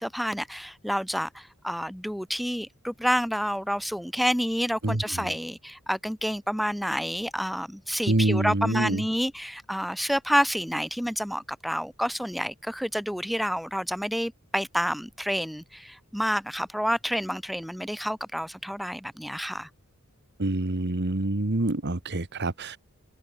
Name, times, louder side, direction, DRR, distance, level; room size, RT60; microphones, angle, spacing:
voice 1, 0.0-19.7, equal, ahead, 3.1 m, -29 dB
voice 2, 8.1-9.0 20.4-22.8, right 2 dB, 55° right, 1.5 m, -26 dB
head